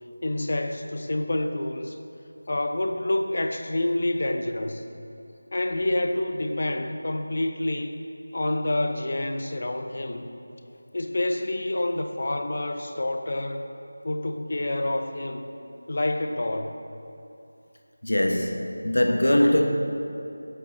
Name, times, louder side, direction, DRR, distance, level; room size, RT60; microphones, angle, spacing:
voice 1, 0.2-2.0 2.5-4.9 5.5-8.0 8.3-10.3 10.9-13.7 14.0-15.5 15.9-16.8, left 1 dB, 45° left, 0.8 m, -28 dB
voice 2, 18.0-19.7, left 1 dB, 65° left, 1.2 m, -21 dB
21.5 x 8.0 x 2.7 m
figure-of-eight pair, 165°, 0 cm